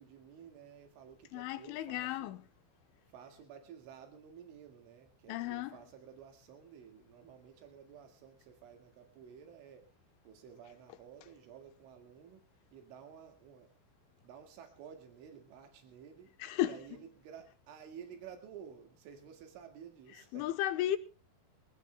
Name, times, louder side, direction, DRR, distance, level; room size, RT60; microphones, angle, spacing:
voice 1, 0.0-2.3 3.1-9.9 10.2-13.8 14.2-16.4 16.6-20.5, right 8 dB, 85° right, 4.5 m, -53 dB
voice 2, 1.3-2.4 5.3-5.8 16.4-16.8 20.3-21.0, left 13 dB, 90° left, 3.5 m, -34 dB
23.5 x 16.5 x 2.3 m
omnidirectional pair, 5.4 m